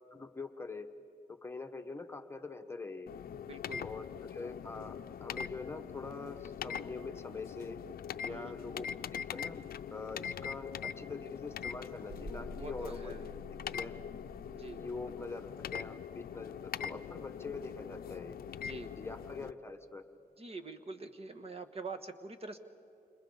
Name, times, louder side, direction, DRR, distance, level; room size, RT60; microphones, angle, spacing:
voice 1, 0.1-0.9 1.4-3.1 3.8-7.8 8.2-9.6 9.9-13.1 13.5-13.9 14.8-18.4 19.0-20.0, left 3 dB, 15° left, 5 dB, 1.3 m, -44 dB
sound 1, 3.1-19.5, left 8 dB, 65° left, 0.6 m, -43 dB
voice 2, 3.5-3.8 8.3-8.5 12.5-13.3 14.5-14.8 18.6-18.9 20.4-22.6, right 3 dB, 35° right, 7 dB, 1.4 m, -45 dB
sound 2, 12.1-15.2, left 1 dB, 80° right, 4.0 m, -48 dB
29.5 x 26.5 x 4.0 m, 2.9 s
cardioid pair, 90°, 17 cm